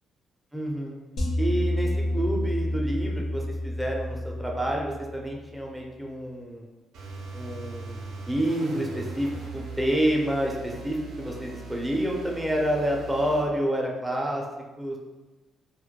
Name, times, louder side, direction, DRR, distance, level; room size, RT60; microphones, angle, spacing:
voice 1, 0.5-1.0 1.4-6.6 7.3-14.4 14.8-15.0, right 1 dB, 5° right, -1 dB, 0.4 m, -28 dB
sound 1, 1.2-5.5, left 1 dB, 60° left, 0.5 m, -29 dB
sound 2, 6.9-13.5, right 3 dB, 90° right, 0.5 m, -40 dB
2.1 x 2.1 x 2.8 m, 1.1 s
cardioid pair, 90°, 0 cm